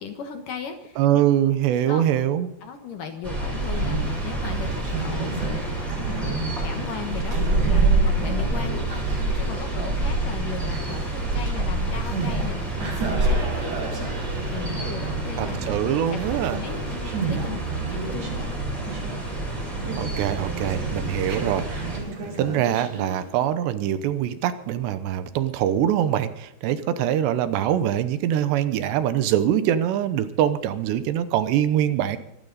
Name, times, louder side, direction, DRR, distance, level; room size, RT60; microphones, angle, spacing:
voice 1, 0.0-1.2 1.9-2.1 2.6-15.6 16.1-18.5 26.7-27.1, left 7 dB, 65° left, 6 dB, 2.4 m, -37 dB
voice 2, 1.0-2.5 15.4-16.6 20.0-21.7 22.4-32.2, right 11 dB, 80° right, 12 dB, 3.1 m, -23 dB
sound 1, 3.2-22.0, right 2 dB, 15° right, 7.1 m, -27 dB
Conversation, 3.6-23.3, right 4 dB, 50° right, 4.6 m, -34 dB
25.0 x 12.5 x 4.1 m, 0.82 s
omnidirectional pair, 5.0 m